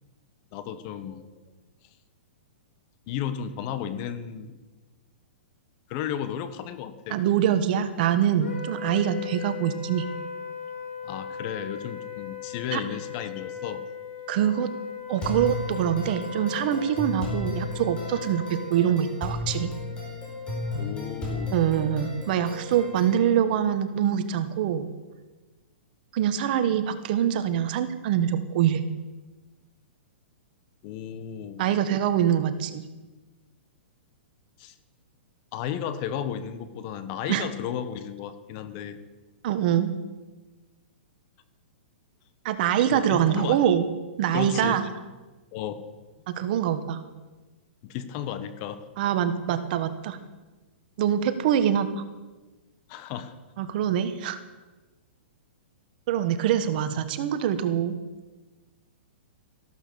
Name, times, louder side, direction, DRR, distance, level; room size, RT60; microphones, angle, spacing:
voice 1, 0.5-1.3 3.1-4.5 5.9-7.2 11.0-13.8 20.8-21.6 30.8-31.7 34.6-34.7 35.5-39.0 42.9-43.7 44.3-44.8 45.5-45.9 47.8-48.8 52.9-53.3, left 9 dB, 35° left, 12 dB, 1.2 m, -34 dB
voice 2, 7.1-10.1 12.7-12.8 14.3-14.7 15.1-19.7 21.5-24.9 26.1-28.8 31.6-32.8 37.3-37.4 39.4-40.0 42.4-43.8 44.2-44.9 46.3-47.0 49.0-50.2 51.0-51.9 53.6-54.4 56.1-58.0, right 9 dB, 50° right, 10 dB, 1.4 m, -24 dB
Wind instrument woodwind instrument, 8.4-18.8, left 7 dB, 90° left, 4.0 m, -38 dB
sound 1, 15.2-23.2, left 2 dB, 15° left, 4.9 m, -34 dB
14.5 x 12.0 x 7.0 m, 1.2 s
hypercardioid pair, 150°, 6 cm